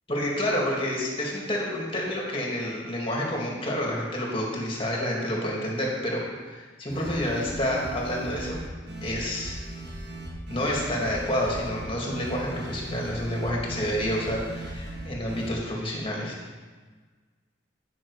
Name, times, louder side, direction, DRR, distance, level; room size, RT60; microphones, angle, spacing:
voice 1, 0.1-6.2 6.5-8.6 9.0-9.6 10.5-16.3, equal, 30° left, -2 dB, 2.1 m, -29 dB
sound 1, 6.9-15.5, right 1 dB, 70° right, 1.6 m, -38 dB
10.5 x 6.2 x 4.8 m, 1.4 s
head